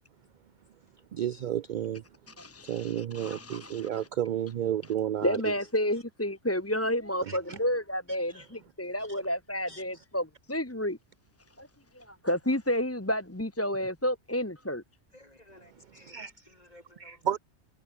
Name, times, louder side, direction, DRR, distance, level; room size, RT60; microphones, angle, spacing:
voice 1, 1.1-2.0 2.7-5.5 7.3-7.6 8.3-8.4 9.1-9.2 9.7-9.8 16.1-16.3 17.0-17.4, right 10 dB, 60° right, 0.5 m, -32 dB
voice 2, 2.3-4.1 5.2-11.0 11.6-11.7 11.9-14.8, left 1 dB, 15° left, 1.4 m, -31 dB
voice 3, 15.1-17.4, left 1 dB, 35° left, 5.1 m, -56 dB
omnidirectional pair, 1.1 m